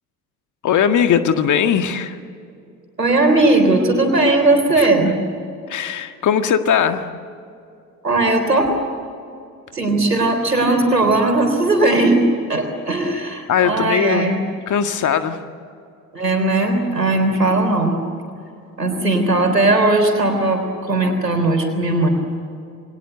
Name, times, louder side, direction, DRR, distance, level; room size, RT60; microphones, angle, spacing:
voice 1, 0.6-2.2 4.8-4.9 5.7-7.1 13.5-14.4 14.7-15.4 19.5-19.7, left 8 dB, 40° left, 8 dB, 1.8 m, -19 dB
voice 2, 3.0-5.2 8.0-8.7 9.7-12.2 12.5-14.4 16.1-18.0 18.8-22.1, right 2 dB, 85° right, 4 dB, 3.8 m, -17 dB
28.5 x 22.0 x 8.0 m, 2.5 s
figure-of-eight pair, 60°, 47 cm